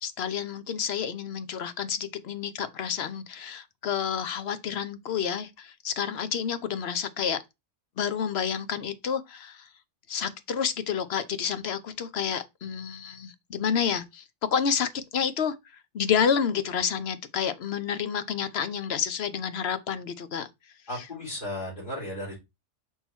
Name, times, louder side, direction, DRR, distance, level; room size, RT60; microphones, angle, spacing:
voice 1, 0.0-7.4 8.0-9.7 10.1-14.2 14.5-15.6 15.9-20.5 20.9-21.1, left 7 dB, 65° left, 1.0 m, -29 dB
voice 2, 20.9-22.4, left 1 dB, 45° left, 3.8 m, -35 dB
5.8 x 3.7 x 4.3 m
omnidirectional pair, 1.2 m